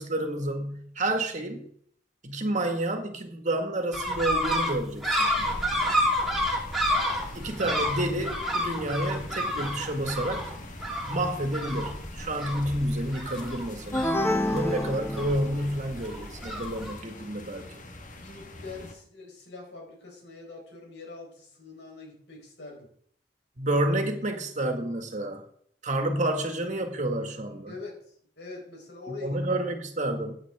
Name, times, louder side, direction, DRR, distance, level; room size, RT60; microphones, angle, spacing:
voice 1, 0.0-1.7 2.2-5.5 7.3-10.5 11.1-14.1 14.5-17.9 23.6-25.4 25.8-27.7 29.1-30.3, right 1 dB, 45° right, 5 dB, 2.0 m, -29 dB
sound 1, 3.9-17.0, equal, ahead, 3.4 m, -30 dB
sound 2, 5.3-18.9, left 1 dB, 45° left, 1.6 m, -44 dB
sound 3, 13.9-15.8, left 1 dB, 15° left, 1.0 m, -28 dB
voice 2, 18.1-22.9 27.7-29.3, left 3 dB, 85° left, 1 dB, 4.5 m, -44 dB
15.5 x 9.1 x 3.7 m, 0.62 s
head